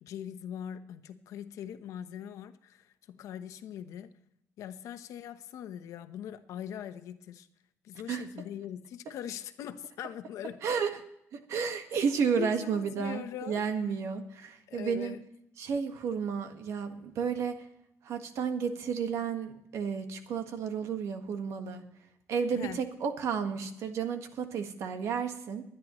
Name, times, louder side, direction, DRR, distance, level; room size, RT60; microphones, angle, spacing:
voice 1, 0.0-4.1 4.6-7.5 7.8-10.6 10.9-11.0 12.4-13.7 14.7-15.2 22.5-22.8, left 9 dB, 85° left, 10 dB, 0.9 m, -41 dB
voice 2, 11.3-15.2 15.6-17.5 18.0-21.8 22.3-25.6, right 6 dB, 65° right, 7 dB, 1.6 m, -32 dB
23.5 x 10.0 x 3.1 m, 0.78 s
cardioid pair, 170°, 5 cm